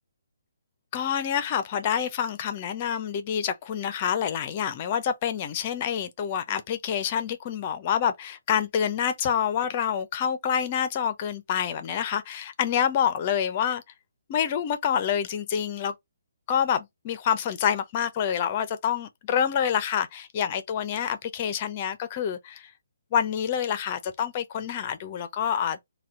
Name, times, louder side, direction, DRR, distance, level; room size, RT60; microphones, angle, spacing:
voice 1, 0.9-13.8 14.3-15.9 16.5-22.7 23.1-25.8, left 8 dB, 35° left, 0.6 m, -27 dB
4.0 x 2.3 x 3.7 m
hypercardioid pair, 150°, 0 cm